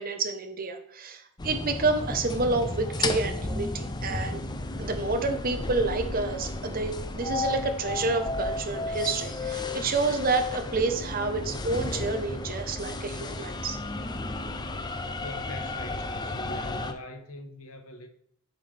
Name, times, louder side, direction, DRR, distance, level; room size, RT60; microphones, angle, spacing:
voice 1, 0.0-4.4 4.8-13.8, right 3 dB, 45° right, 1.0 m, -29 dB
sound 1, 1.4-16.9, left 2 dB, 20° left, 0.5 m, -33 dB
voice 2, 15.2-18.1, left 1 dB, 85° left, 1.2 m, -42 dB
8.7 x 5.8 x 3.4 m
head